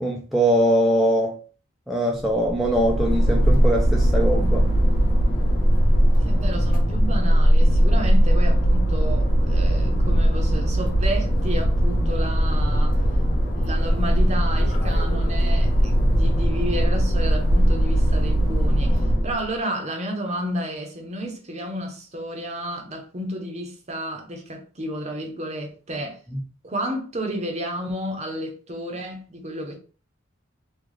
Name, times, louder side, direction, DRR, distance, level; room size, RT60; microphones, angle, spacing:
voice 1, 0.0-1.4 1.9-4.7 26.3-26.4, right 1 dB, ahead, 0.4 m, -22 dB
sound 1, 2.1-19.4, equal, 40° left, 0.9 m, -19 dB
voice 2, 6.2-13.0 13.5-26.2 26.6-29.8, right 1 dB, 35° right, 0.7 m, -31 dB
3.8 x 2.3 x 3.1 m
head